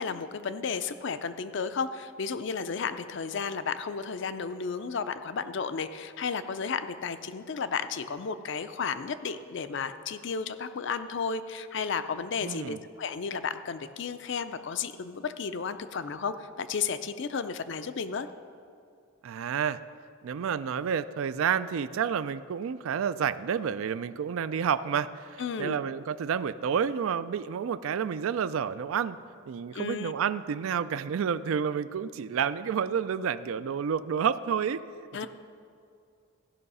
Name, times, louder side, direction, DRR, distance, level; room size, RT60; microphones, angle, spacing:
voice 1, 0.0-18.3 25.4-25.8 29.7-30.1 35.1-35.3, left 5 dB, 55° left, 11 dB, 0.4 m, -33 dB
voice 2, 12.4-12.8 19.2-19.8 20.2-29.2 29.5-34.8, right 7 dB, 70° right, 15 dB, 0.3 m, -30 dB
15.5 x 5.6 x 5.4 m, 2.4 s
head